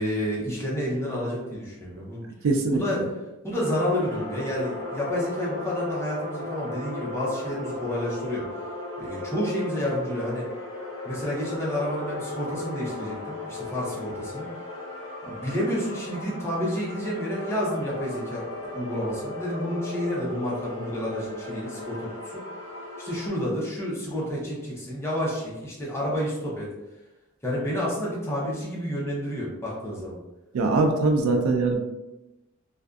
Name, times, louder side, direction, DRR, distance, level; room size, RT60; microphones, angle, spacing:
voice 1, 0.0-2.2 2.7-3.0 3.4-8.5 9.0-10.5 11.0-14.5 15.2-22.4 23.0-26.7 27.4-30.2, equal, 10° left, -5 dB, 0.6 m, -30 dB
voice 2, 2.4-2.8 30.5-31.8, right 3 dB, 75° right, 4 dB, 0.4 m, -22 dB
sound 1, 3.5-23.3, left 2 dB, 60° left, 0.9 m, -37 dB
2.5 x 2.3 x 2.3 m, 0.99 s
head